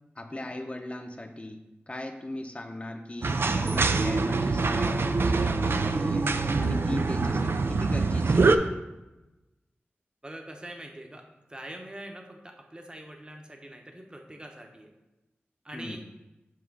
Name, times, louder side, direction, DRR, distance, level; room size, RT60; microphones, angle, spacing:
voice 1, 0.2-1.6 1.9-6.3 6.6-8.7 15.7-16.0, left 1 dB, 30° left, 5 dB, 0.7 m, -38 dB
sound 1, 3.2-8.6, right 3 dB, 65° right, 0.4 m, -24 dB
voice 2, 10.2-11.2 11.5-14.9 15.6-16.0, right 1 dB, 20° right, 2 dB, 0.9 m, -43 dB
7.4 x 3.0 x 6.0 m, 1.0 s
wide cardioid pair, 80°, 4 cm